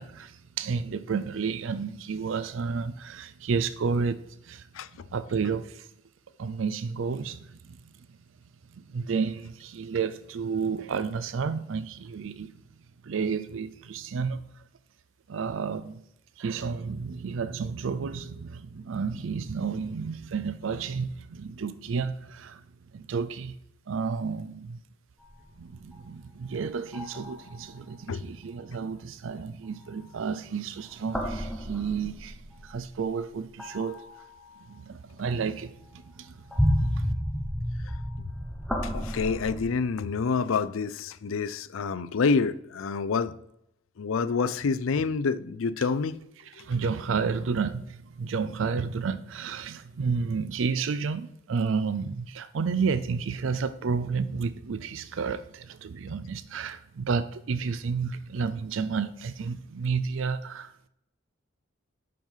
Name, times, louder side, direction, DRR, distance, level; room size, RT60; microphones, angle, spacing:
voice 1, 0.0-4.7 4.9-5.9 6.4-7.8 8.7-12.5 13.0-14.6 15.3-16.0 16.4-22.6 22.9-23.6 23.9-24.8 25.6-34.0 34.7-36.4 36.7-37.1 46.4-60.7, right 5 dB, 75° right, 0.4 m, -31 dB
sound 1, 25.2-26.6 26.9-27.7 30.8-32.8 33.6-34.6 35.3-35.4 36.1-39.6, equal, ahead, 1.0 m, -31 dB
voice 2, 38.8-43.3 44.0-46.2 46.6-46.7, left 5 dB, 85° left, 0.5 m, -27 dB
7.5 x 5.5 x 5.5 m
head